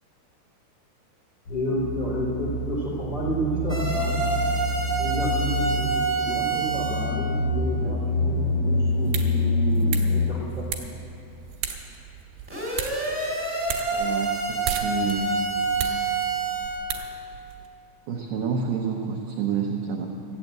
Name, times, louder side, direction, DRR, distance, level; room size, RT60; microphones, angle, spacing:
voice 1, 1.5-4.2 5.0-10.7, equal, 80° left, -7 dB, 0.5 m, -30 dB
sound 1, 1.5-10.3, left 1 dB, 55° left, 1.4 m, -26 dB
sound 2, 3.7-7.1 12.5-16.8, right 3 dB, 10° right, 0.8 m, -27 dB
sound 3, 8.8-17.7, right 8 dB, 70° right, 2.7 m, -36 dB
voice 2, 13.9-15.4 18.1-20.1, right 7 dB, 85° right, 0 dB, 2.1 m, -28 dB
14.5 x 8.7 x 7.9 m, 2.8 s
omnidirectional pair, 5.6 m